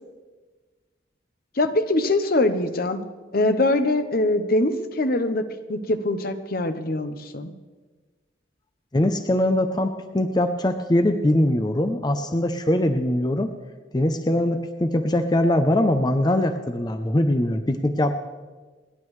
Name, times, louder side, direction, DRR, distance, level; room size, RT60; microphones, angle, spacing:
voice 1, 1.6-3.0 3.3-7.5, left 2 dB, 50° left, 9 dB, 0.8 m, -23 dB
voice 2, 8.9-13.5 13.9-18.2, left 1 dB, 20° left, 7 dB, 0.6 m, -22 dB
28.5 x 11.0 x 3.2 m, 1.3 s
head